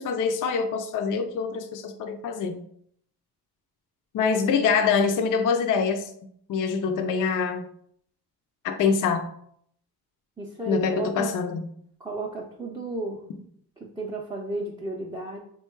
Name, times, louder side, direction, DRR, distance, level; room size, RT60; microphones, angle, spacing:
voice 1, 0.0-2.6 4.1-6.1 6.5-7.7 8.6-9.3 10.7-11.6, left 5 dB, 50° left, 6 dB, 0.5 m, -25 dB
voice 2, 10.4-11.3 12.0-13.2 14.0-15.4, right 2 dB, 10° right, -3 dB, 0.4 m, -33 dB
3.7 x 2.3 x 4.4 m, 0.67 s
cardioid pair, 115°, 40 cm